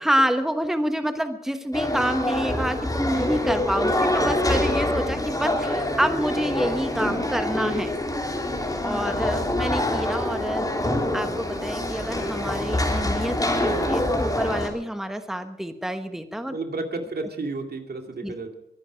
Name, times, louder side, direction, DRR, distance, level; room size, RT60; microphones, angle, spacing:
voice 1, 0.0-7.9 8.8-10.7 11.1-16.6 18.2-18.3, equal, ahead, 8 dB, 1.1 m, -27 dB
sound 1, 1.7-14.7, left 1 dB, 20° left, 3.4 m, -25 dB
voice 2, 16.4-18.5, right 3 dB, 70° right, 4 dB, 2.4 m, -32 dB
23.0 x 11.0 x 5.1 m, 0.83 s
wide cardioid pair, 100°, 17 cm